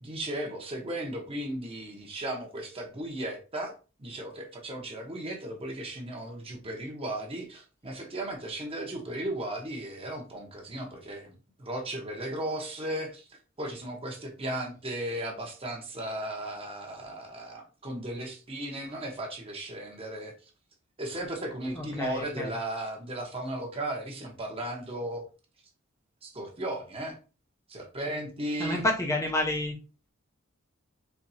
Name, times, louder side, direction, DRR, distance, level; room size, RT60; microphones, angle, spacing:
voice 1, 0.0-3.7 4.0-20.5 21.0-25.2 26.2-27.2 27.7-28.8, right 1 dB, 30° right, 1 dB, 1.0 m, -36 dB
voice 2, 21.7-22.5 28.6-29.8, left 1 dB, 15° left, 0 dB, 0.6 m, -29 dB
4.6 x 3.2 x 2.7 m, 0.34 s
head